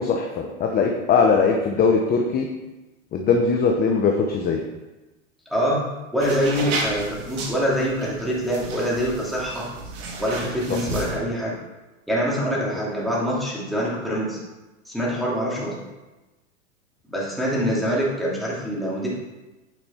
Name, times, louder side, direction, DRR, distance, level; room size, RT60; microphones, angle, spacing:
voice 1, 0.0-2.5 3.1-4.6 10.7-10.8, left 5 dB, 25° left, 2 dB, 0.8 m, -20 dB
voice 2, 5.5-5.8 6.1-9.7 10.2-11.6 12.1-14.4 14.9-15.7 17.1-19.1, equal, ahead, -6 dB, 2.7 m, -25 dB
sound 1, 6.2-11.2, right 3 dB, 65° right, 2.0 m, -32 dB
9.1 x 5.3 x 4.3 m, 1.1 s
hypercardioid pair, 115°, 39 cm